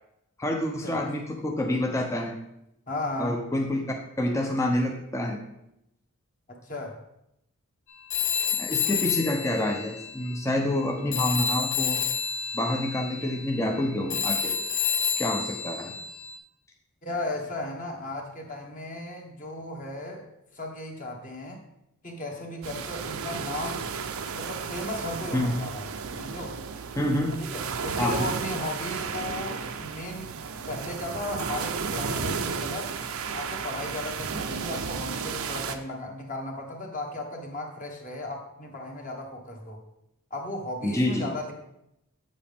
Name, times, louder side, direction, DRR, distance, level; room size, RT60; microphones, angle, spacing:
voice 1, 0.4-2.4 3.2-5.4 8.6-12.0 12.5-14.6 15.2-15.9 25.3-25.6 27.0-27.4 27.9-28.3 40.8-41.3, left 1 dB, 15° left, 2 dB, 0.6 m, -27 dB
voice 2, 2.9-3.4 6.5-7.0 17.0-20.3 20.5-21.6 22.0-23.9 24.3-25.9 26.2-26.6 27.4-30.3 30.7-32.9 33.3-39.8 40.3-41.5, left 1 dB, 35° left, 0 dB, 1.4 m, -35 dB
Telephone, 8.1-10.8 11.1-16.4, left 7 dB, 60° left, 1.0 m, -29 dB
sound 1, 22.6-35.8, right 5 dB, 70° right, 0.6 m, -33 dB
8.0 x 7.4 x 3.5 m, 0.81 s
head